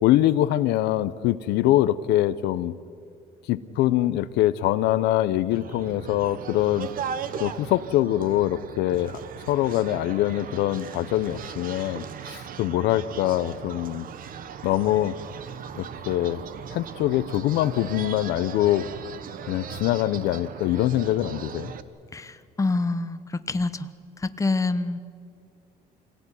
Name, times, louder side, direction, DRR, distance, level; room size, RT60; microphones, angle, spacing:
voice 1, 0.0-2.8 3.5-6.9 7.4-9.2 9.5-14.1 14.6-15.1 15.8-16.4 16.7-18.8 19.5-21.7, left 14 dB, 85° left, 13 dB, 0.8 m, -24 dB
sound 1, 5.5-21.8, right 8 dB, 55° right, 1.2 m, -38 dB
voice 2, 22.1-23.9 24.2-25.0, left 3 dB, 20° left, 11 dB, 1.1 m, -26 dB
25.5 x 17.5 x 10.0 m, 2.4 s
cardioid pair, 110°, 17 cm